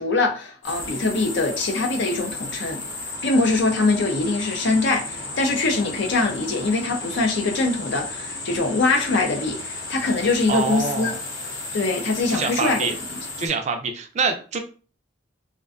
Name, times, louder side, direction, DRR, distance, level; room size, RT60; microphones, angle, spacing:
voice 1, 0.0-2.8 3.2-11.1 11.7-12.9, left 3 dB, 65° left, 0.6 m, -23 dB
sound 1, 0.6-13.5, left 2 dB, 85° left, 0.9 m, -34 dB
voice 2, 10.5-11.2 12.3-12.9 13.4-14.6, right 4 dB, 35° right, 0.3 m, -25 dB
2.5 x 2.1 x 2.4 m
head